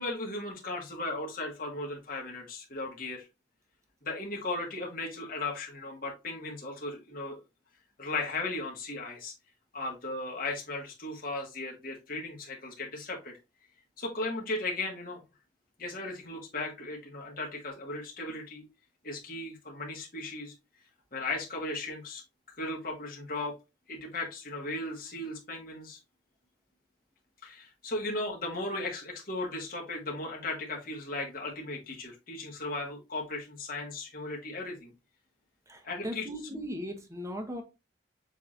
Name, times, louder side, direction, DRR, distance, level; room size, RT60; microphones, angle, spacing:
voice 1, 0.0-3.3 4.0-7.4 8.0-9.3 9.7-13.3 14.0-15.2 15.8-18.6 19.0-20.5 21.1-22.2 22.6-23.5 23.9-26.0 27.4-34.9 35.8-36.2, left 2 dB, 50° left, 1.6 m, -36 dB
voice 2, 35.7-37.6, equal, 15° right, 0.9 m, -38 dB
7.0 x 2.9 x 2.5 m
head